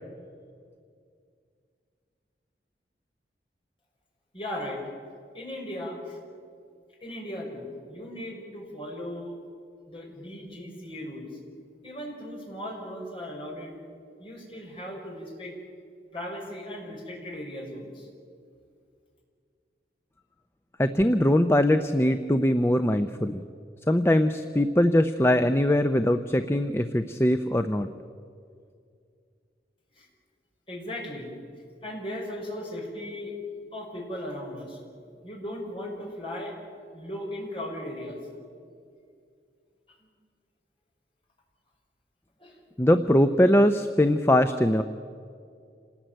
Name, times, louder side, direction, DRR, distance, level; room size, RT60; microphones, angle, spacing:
voice 1, 4.3-4.8 5.3-6.2 7.0-9.3 9.9-11.3 11.8-13.7 14.2-15.5 16.1-18.1 30.0-30.1 30.7-31.3 31.8-33.3 33.7-34.8 35.2-36.5 36.9-38.3 42.4-42.6, left 1 dB, 30° left, -1 dB, 6.0 m, -37 dB
voice 2, 20.8-23.4 23.9-27.9 42.8-44.8, left 1 dB, 15° left, 9 dB, 0.6 m, -22 dB
27.0 x 19.0 x 9.1 m, 2.3 s
head